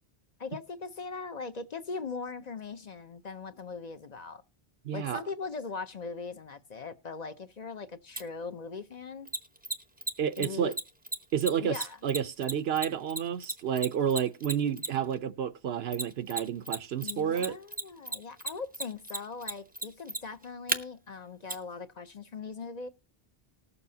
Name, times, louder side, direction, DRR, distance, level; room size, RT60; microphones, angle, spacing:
voice 1, 0.4-4.4 4.9-9.3 10.4-10.8 11.6-12.0 17.0-22.9, left 4 dB, 45° left, 0.8 m, -40 dB
voice 2, 4.8-5.2 10.2-10.7 11.3-17.6, right 8 dB, 80° right, 1.0 m, -30 dB
Mechanisms, 8.2-8.3 9.3-15.1 15.9-16.8 17.0-20.8 21.5-21.6, right 2 dB, 10° right, 0.6 m, -33 dB
19.5 x 7.0 x 2.8 m
omnidirectional pair, 1.0 m